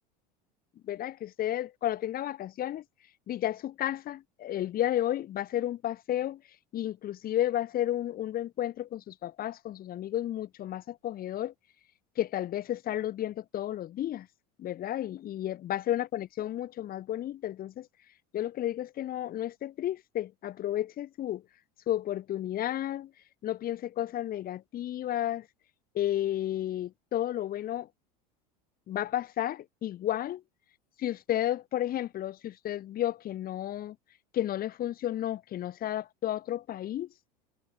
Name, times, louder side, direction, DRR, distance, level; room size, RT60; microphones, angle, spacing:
voice 1, 0.8-2.8 3.3-6.4 6.7-11.5 12.2-14.3 14.6-17.9 18.3-21.4 21.9-23.1 23.4-25.5 25.9-27.9 28.9-30.4 31.0-33.9 34.3-37.1, left 12 dB, 45° left, 3.1 m, -32 dB
hypercardioid pair, 90°, 21 cm